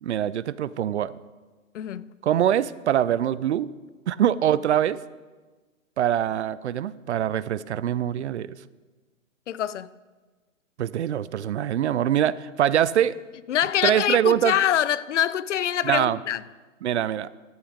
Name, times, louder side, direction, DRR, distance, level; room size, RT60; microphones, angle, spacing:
voice 1, 0.0-1.1 2.2-3.7 4.1-5.0 6.0-8.6 10.8-13.2 13.8-14.6 15.8-16.2 16.8-17.3, right 10 dB, 60° right, 0.5 m, -23 dB
voice 2, 1.7-2.1 9.5-9.9 13.5-16.4, left 11 dB, 60° left, 0.5 m, -25 dB
12.0 x 8.2 x 5.0 m
hypercardioid pair, 140°, 40 cm